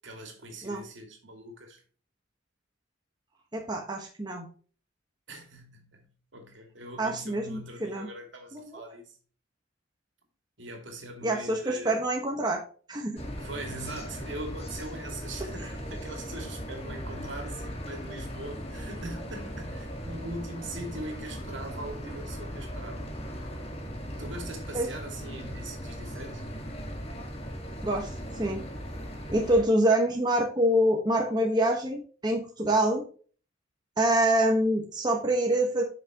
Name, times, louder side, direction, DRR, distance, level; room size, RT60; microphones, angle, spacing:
voice 1, 0.0-1.8 5.3-9.2 10.6-11.9 13.4-23.1 24.2-26.4, right 1 dB, 65° right, 2.5 m, -41 dB
voice 2, 3.5-4.5 7.0-8.1 8.5-8.8 11.2-12.6 12.9-13.2 24.7-24.9 27.8-28.6 29.3-33.0 34.0-35.8, right 1 dB, 20° right, 1.4 m, -26 dB
sound 1, 13.2-29.6, equal, 30° left, 1.9 m, -38 dB
8.9 x 6.3 x 3.0 m
head